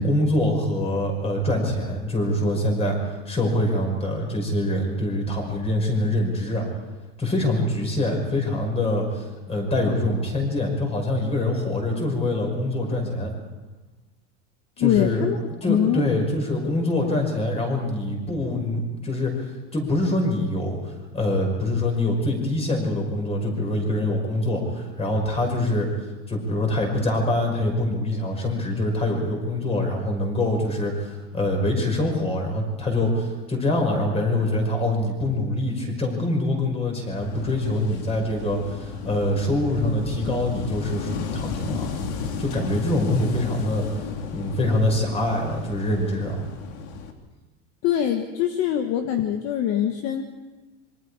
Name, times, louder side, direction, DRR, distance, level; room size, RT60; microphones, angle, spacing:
voice 1, 0.0-3.0 3.3-6.7 7.2-13.3 14.8-15.2 15.6-25.9 26.3-42.0 42.4-43.8 44.3-46.4, left 1 dB, 15° left, 2 dB, 5.7 m, -24 dB
voice 2, 14.8-15.4 15.7-16.1 47.8-50.2, left 10 dB, 40° left, 6 dB, 1.5 m, -23 dB
Wind / Waves surf, 37.1-47.1, left 5 dB, 65° left, 3.2 m, -33 dB
26.5 x 24.5 x 4.9 m, 1.2 s
supercardioid pair, 155°, 37 cm